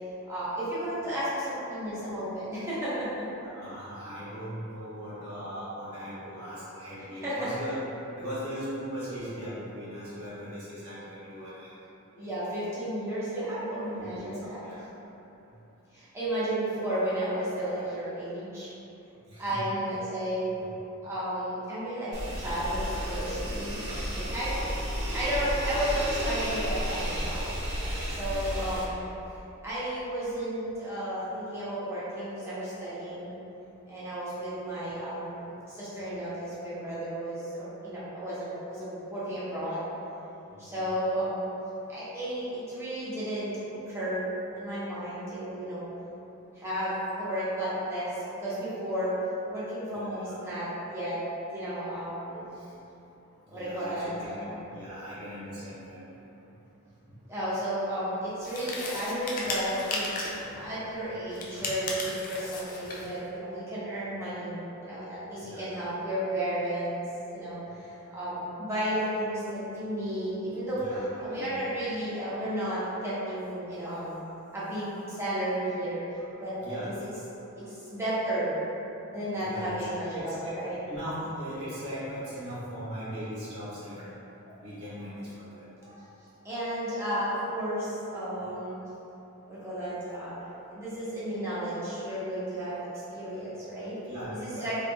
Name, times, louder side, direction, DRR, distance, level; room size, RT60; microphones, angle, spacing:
voice 1, 0.3-3.1 7.2-7.5 12.1-14.6 15.9-18.7 19.4-20.5 21.0-23.8 24.1-24.6 25.1-27.6 28.1-29.1 29.6-33.4 33.9-39.9 40.6-41.5 41.9-45.9 46.5-49.2 49.5-51.2 51.5-52.5 53.5-54.6 57.3-67.0 67.3-74.2 74.5-76.0 76.4-76.6 76.8-77.1 77.6-77.7 77.9-78.5 79.1-80.8 86.4-88.8 89.5-90.3 90.7-92.8 93.1-94.0 94.3-94.7, right 1 dB, 10° right, -11 dB, 0.9 m, -33 dB
voice 2, 3.4-7.7 8.1-11.7 14.0-14.8 19.2-19.7 28.2-28.7 40.5-40.8 49.9-50.4 53.5-56.3 65.4-65.7 70.7-71.7 76.2-76.3 76.6-77.0 77.8-78.0 79.3-79.7 80.1-80.5 80.9-84.1 84.4-86.0 92.7-92.8 94.0-94.7, equal, 90° right, -11 dB, 1.3 m, -39 dB
sound 1, 22.1-28.8, equal, 50° right, 0.8 m, -32 dB
sound 2, 58.4-60.5 61.3-63.1, left 2 dB, 40° left, 0.4 m, -35 dB
3.3 x 3.2 x 2.2 m, 3.0 s
head